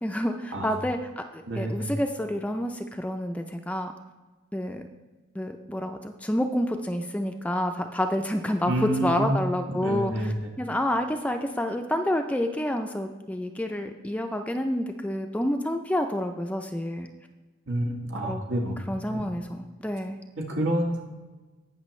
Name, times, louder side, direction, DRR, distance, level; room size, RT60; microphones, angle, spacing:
voice 1, 0.0-3.9 4.5-4.8 5.4-17.1 18.2-18.4 18.9-20.2, left 1 dB, 5° left, 5 dB, 0.4 m, -29 dB
voice 2, 1.5-1.9 8.6-9.4 9.7-10.5 17.7-18.8 19.1-19.2 20.4-21.0, right 1 dB, 85° right, 0 dB, 1.6 m, -28 dB
18.0 x 6.1 x 3.2 m, 1.2 s
head